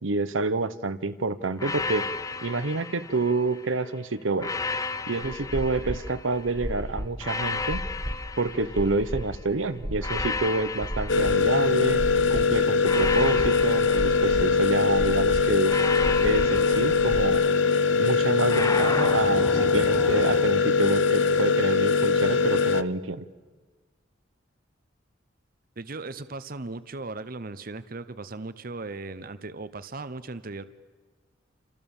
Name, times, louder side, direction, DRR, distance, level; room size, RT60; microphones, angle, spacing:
voice 1, 0.0-2.1 2.4-4.5 5.1-7.9 8.4-12.0 12.3-15.8 16.2-17.4 17.9-23.2, right 3 dB, 90° right, 11 dB, 1.0 m, -28 dB
sound 1, 1.6-3.7 4.4-6.5 7.2-9.4 10.0-12.2 12.8-15.0 15.7-17.8 18.5-20.5, left 3 dB, 20° left, 0.7 m, -34 dB
sound 2, 5.2-17.3, equal, 25° right, 2.1 m, -35 dB
sound 3, 11.1-22.8, left 5 dB, 75° left, 0.8 m, -22 dB
voice 2, 25.8-30.6, right 3 dB, 50° right, 13 dB, 0.9 m, -37 dB
28.0 x 27.0 x 7.3 m, 1.4 s
head